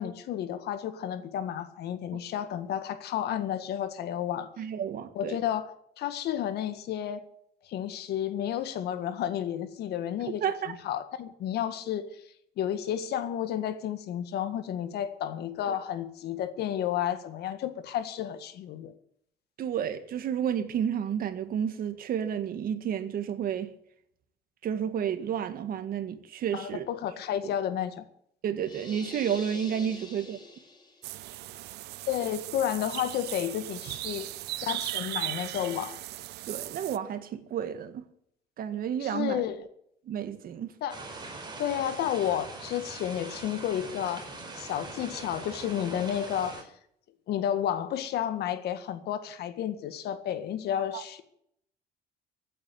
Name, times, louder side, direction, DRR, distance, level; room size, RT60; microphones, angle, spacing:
voice 1, 0.0-4.5 5.2-7.2 7.6-10.4 10.7-12.2 12.6-18.9 26.5-28.0 32.1-34.3 34.7-36.0 39.0-39.7 40.8-41.0 41.6-44.3 44.6-46.7 47.3-51.2, left 10 dB, 75° left, 1.8 m, -31 dB
voice 2, 4.6-5.4 10.4-10.7 15.7-15.8 19.6-23.7 24.6-26.9 27.4-27.5 28.4-30.4 36.5-38.0 38.6-39.4 40.1-40.7 50.9-51.0, right 8 dB, 60° right, 1.8 m, -31 dB
sound 1, 28.6-31.2, left 3 dB, 25° left, 3.7 m, -45 dB
sound 2, 31.0-37.0, right 16 dB, 80° right, 0.7 m, -37 dB
sound 3, 40.9-46.6, right 3 dB, 25° right, 4.4 m, -42 dB
16.0 x 8.8 x 8.4 m
cardioid pair, 110°, 17 cm